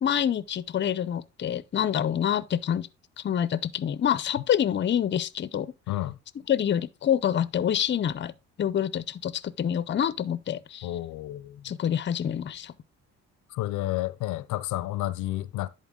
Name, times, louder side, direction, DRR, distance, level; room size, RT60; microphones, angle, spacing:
voice 1, 0.0-2.9 3.2-5.7 6.5-8.3 8.6-10.9 11.6-12.7, left 9 dB, 40° left, 0.6 m, -27 dB
voice 2, 5.9-6.2 10.8-11.6 13.5-15.7, left 15 dB, 85° left, 0.5 m, -30 dB
10.5 x 4.2 x 3.7 m
cardioid pair, 90°, 30 cm